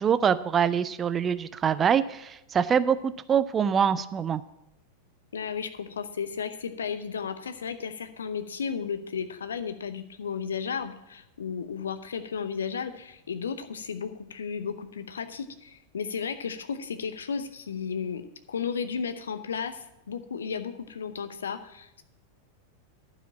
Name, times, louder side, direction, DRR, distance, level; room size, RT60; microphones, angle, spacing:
voice 1, 0.0-4.4, right 7 dB, 25° right, 14 dB, 0.4 m, -24 dB
voice 2, 5.3-18.2 18.5-22.0, left 6 dB, 70° left, 10 dB, 0.7 m, -34 dB
11.5 x 5.0 x 7.4 m, 0.86 s
figure-of-eight pair, 90°, 0 cm